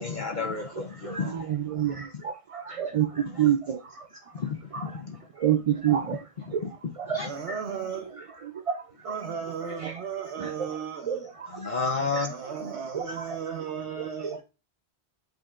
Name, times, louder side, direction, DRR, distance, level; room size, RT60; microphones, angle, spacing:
voice 1, 0.0-1.5 3.3-3.5 4.3-5.2 6.1-6.2 6.5-6.7 7.1-7.3 11.5-12.3, left 4 dB, 50° left, 0.9 m, -32 dB
voice 2, 1.0-4.0 4.7-4.9 5.4-6.2 6.5-6.6 7.0-7.2 7.5-7.6 8.7-8.8 9.8-9.9 10.4-10.7 11.1-12.2 12.9-13.0 14.2-14.4, right 10 dB, 55° right, 0.4 m, -28 dB
voice 3, 7.2-8.1 9.0-11.3 12.3-14.4, right 7 dB, 90° right, 1.0 m, -35 dB
7.9 x 5.0 x 2.4 m
omnidirectional pair, 1.1 m